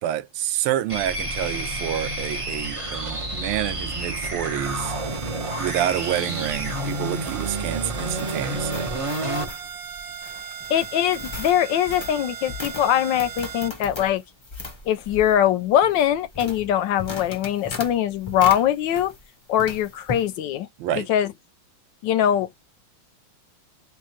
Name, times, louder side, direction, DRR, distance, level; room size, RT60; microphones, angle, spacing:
voice 1, 0.0-4.9 5.6-8.9 20.8-21.1, right 12 dB, 85° right, 1.4 m, -28 dB
sound 1, 0.9-9.5, right 1 dB, 30° right, 0.6 m, -29 dB
sound 2, 4.6-13.7, right 9 dB, 70° right, 1.2 m, -38 dB
sound 3, 6.9-19.3 19.6-20.3, left 3 dB, 40° left, 0.3 m, -38 dB
voice 2, 10.7-14.2 14.9-19.1 19.5-20.7 21.0-21.3 22.0-22.5, left 10 dB, 75° left, 1.1 m, -22 dB
3.5 x 3.1 x 3.0 m
omnidirectional pair, 2.2 m